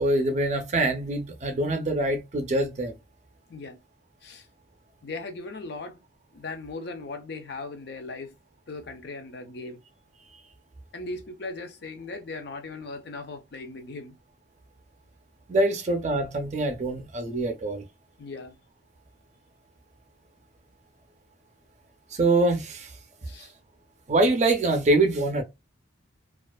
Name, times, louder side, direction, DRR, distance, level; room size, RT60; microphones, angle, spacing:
voice 1, 0.0-2.9 15.5-17.8 22.1-22.9 24.1-25.4, right 2 dB, 35° right, 0.5 m, -24 dB
voice 2, 5.0-6.0 6.3-8.3 8.7-9.8 10.9-14.2 18.2-18.5 23.3-23.5, left 3 dB, 55° left, 0.5 m, -38 dB
2.4 x 2.4 x 2.2 m
head